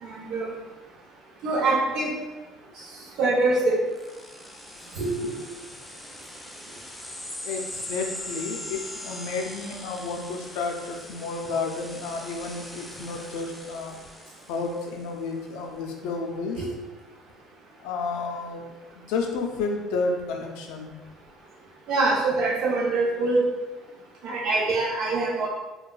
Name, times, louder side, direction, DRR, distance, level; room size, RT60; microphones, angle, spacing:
voice 1, 0.0-0.5 1.4-2.1 3.2-3.8 5.0-5.3 16.6-16.7 21.9-23.4 24.2-25.5, right 3 dB, 70° right, -3 dB, 0.8 m, -24 dB
sound 1, 3.9-15.0, left 1 dB, 5° left, 0.3 m, -41 dB
voice 2, 7.4-14.0 14.5-16.7 17.8-18.6 18.9-20.9, left 4 dB, 85° left, 2 dB, 0.4 m, -31 dB
3.3 x 2.2 x 2.3 m, 1.1 s
cardioid pair, 125°, 0 cm